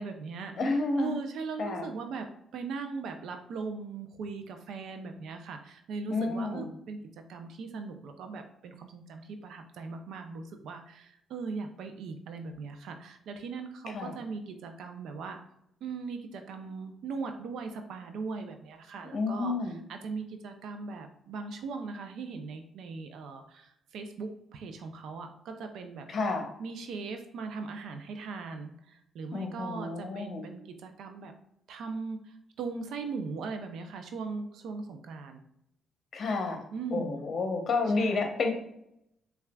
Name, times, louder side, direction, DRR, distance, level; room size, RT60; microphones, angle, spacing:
voice 1, 0.0-15.4 15.8-26.1 26.6-31.3 31.7-35.4 36.7-37.2 37.9-38.3, right 4 dB, 75° right, 6 dB, 0.4 m, -39 dB
voice 2, 0.6-1.2 1.6-1.9 6.1-6.7 13.9-14.1 19.1-19.8 26.1-26.5 29.3-30.4 36.1-36.6 36.9-38.5, left 3 dB, 50° left, 3 dB, 0.8 m, -30 dB
5.5 x 2.3 x 2.2 m, 0.76 s
cardioid pair, 90°, 0 cm